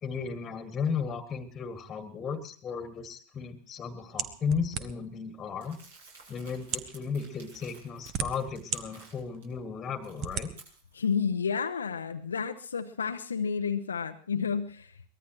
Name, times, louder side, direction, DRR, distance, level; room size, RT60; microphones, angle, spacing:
voice 1, 0.0-5.8 6.3-10.5, left 6 dB, 20° left, 9 dB, 1.8 m, -35 dB
sound 1, 4.2-5.2 6.0-6.1 6.6-7.0 7.7-8.8 9.3-9.4 10.2-10.5, right 8 dB, 35° right, 1.2 m, -34 dB
Crumpling crinkling, 5.6-9.4 9.8-11.1, right 3 dB, 60° right, 7.0 m, -55 dB
voice 2, 10.9-15.1, left 6 dB, 70° left, 7 dB, 0.8 m, -31 dB
23.5 x 19.5 x 3.0 m, 0.43 s
figure-of-eight pair, 90°, 0 cm